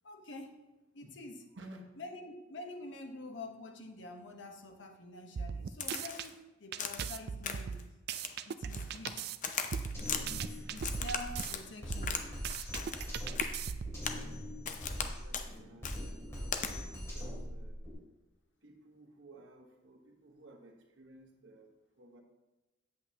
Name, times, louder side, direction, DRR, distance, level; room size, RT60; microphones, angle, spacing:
voice 1, 0.0-0.6 0.9-1.4 2.0-7.8 8.4-9.3 10.0-12.3 15.5-15.8, left 1 dB, 80° left, 4 dB, 1.0 m, -47 dB
voice 2, 1.5-2.0 15.0-17.8 18.6-22.2, right 1 dB, 85° right, 2 dB, 1.2 m, -55 dB
sound 1, 5.4-6.3 6.7-9.4 9.7-11.5 11.9-14.0, right 7 dB, 55° right, 0.3 m, -39 dB
Crack, 5.8-6.3 6.8-7.1 7.4-7.8 8.1-9.1 9.4-10.2 10.8-12.2 12.5-13.1 13.3-13.5 14.0-14.2 14.6-15.1 15.3-15.5 15.8-16.0 16.5-16.7, left 7 dB, 40° left, 0.6 m, -38 dB
Drum kit, 9.9-17.9, equal, 15° left, 2.6 m, -42 dB
8.4 x 7.7 x 2.8 m, 1.1 s
head